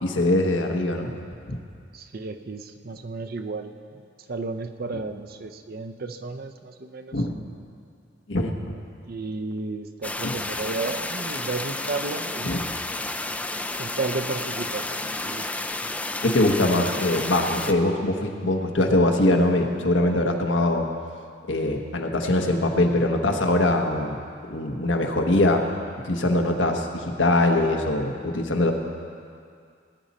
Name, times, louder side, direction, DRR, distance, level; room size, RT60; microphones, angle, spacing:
voice 1, 0.0-1.1 1.5-1.6 7.1-7.3 8.3-8.7 10.2-10.4 12.4-12.6 16.2-20.9 21.5-24.2 24.5-25.6 26.0-28.7, left 1 dB, 80° left, 2 dB, 1.2 m, -22 dB
voice 2, 1.9-3.7 4.3-7.2 9.0-12.5 13.8-15.5, right 3 dB, 55° right, 7 dB, 0.7 m, -33 dB
sound 1, 10.0-17.7, left 2 dB, 10° left, 0.4 m, -31 dB
19.0 x 10.0 x 4.2 m, 2.3 s
head